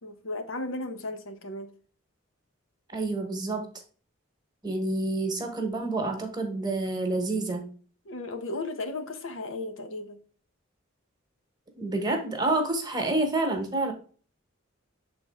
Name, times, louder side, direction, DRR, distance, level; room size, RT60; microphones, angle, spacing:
voice 1, 0.0-1.7 8.1-10.2, left 2 dB, 70° left, 0.9 m, -35 dB
voice 2, 2.9-3.7 4.6-7.7 11.8-13.9, right 2 dB, 20° right, 1.1 m, -28 dB
6.9 x 3.9 x 3.5 m
head